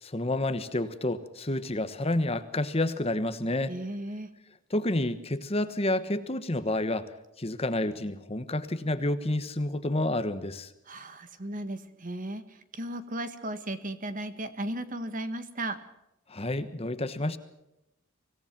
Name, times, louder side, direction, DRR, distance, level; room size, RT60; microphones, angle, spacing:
voice 1, 0.0-3.7 4.7-7.1 7.4-10.7 16.3-17.4, left 1 dB, 30° left, 11 dB, 1.2 m, -29 dB
voice 2, 3.7-4.3 10.9-15.8, right 1 dB, 40° right, 10 dB, 1.7 m, -35 dB
25.5 x 17.5 x 6.1 m, 0.89 s
head